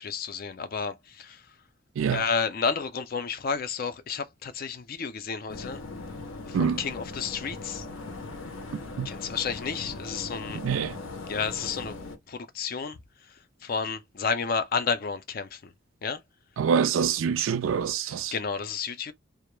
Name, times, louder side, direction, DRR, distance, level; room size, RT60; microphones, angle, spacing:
voice 1, 0.0-1.5 2.1-5.8 6.5-7.9 9.0-10.6 11.2-12.0 12.3-15.7 16.0-16.2 18.0-19.1, left 5 dB, 45° left, 0.4 m, -31 dB
sound 1, 5.5-12.2, left 3 dB, 80° left, 0.6 m, -39 dB
voice 2, 10.6-11.0 16.6-18.3, right 7 dB, 75° right, 0.3 m, -25 dB
2.2 x 2.0 x 2.9 m
head